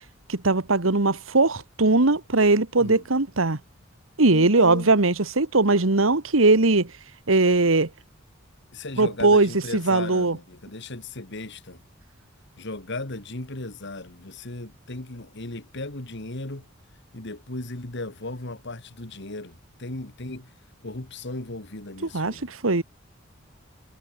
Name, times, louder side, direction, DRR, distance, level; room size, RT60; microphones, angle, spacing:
voice 1, 0.3-3.6 4.2-6.9 7.3-7.9 9.0-10.4 22.1-22.8, right 3 dB, 80° right, 1.7 m, -20 dB
voice 2, 4.3-4.9 8.7-11.8 12.6-16.7 17.1-20.5 20.8-22.5, left 2 dB, 60° left, 2.5 m, -36 dB
head